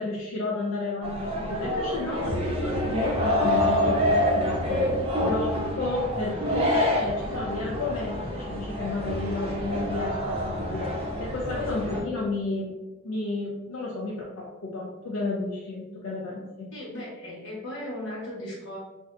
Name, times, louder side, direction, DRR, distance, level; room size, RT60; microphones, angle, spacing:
voice 1, 0.0-4.9 5.2-10.9 11.2-12.8 13.0-16.7, left 2 dB, 85° left, -4 dB, 0.5 m, -32 dB
sound 1, 1.0-12.0, equal, 30° right, 0.6 m, -27 dB
voice 2, 16.7-18.8, left 1 dB, 65° left, -5 dB, 1.1 m, -37 dB
2.6 x 2.5 x 3.2 m, 1.1 s
head